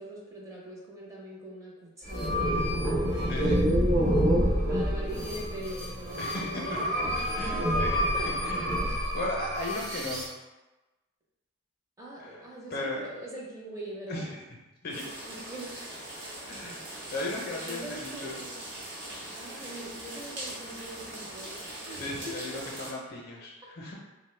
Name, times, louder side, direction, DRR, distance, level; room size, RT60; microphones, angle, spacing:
voice 1, 0.0-2.7 4.6-7.1 7.4-8.5 12.0-14.4 14.9-15.9 17.7-18.6 19.3-22.6, right 1 dB, 15° right, -5 dB, 0.6 m, -42 dB
sound 1, 2.0-10.3, equal, 90° right, 0.7 m, -27 dB
voice 2, 3.1-3.6 6.2-6.8 7.2-8.0 8.4-8.7 9.0-10.2 12.2-12.4 12.7-13.1 14.1-14.4 14.8-15.0 16.5-16.9 17.1-18.4 21.9-23.9, left 2 dB, 50° left, -2 dB, 0.5 m, -36 dB
sound 2, 14.9-22.9, right 1 dB, 60° right, 0.8 m, -41 dB
3.0 x 2.0 x 3.1 m, 1.1 s
head